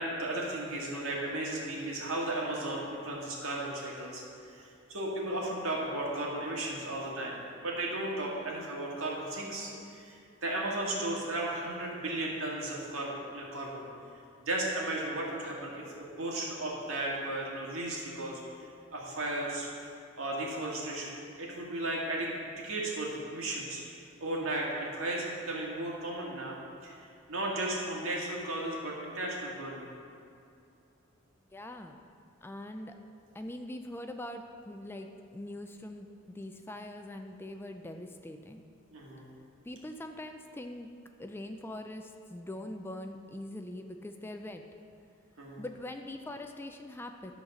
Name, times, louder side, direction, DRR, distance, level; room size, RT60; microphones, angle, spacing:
voice 1, 0.0-4.2 4.5-13.8 14.5-18.4 18.9-19.7 20.2-23.8 24.2-26.6 26.8-27.0 27.3-29.9 38.9-39.3 45.4-45.6, right 1 dB, 85° right, -3 dB, 1.8 m, -35 dB
voice 2, 31.5-32.0 32.4-33.0 33.3-38.6 39.6-40.9 41.2-44.6 45.6-47.3, left 1 dB, 10° left, 5 dB, 0.3 m, -42 dB
11.5 x 4.0 x 6.4 m, 2.5 s
head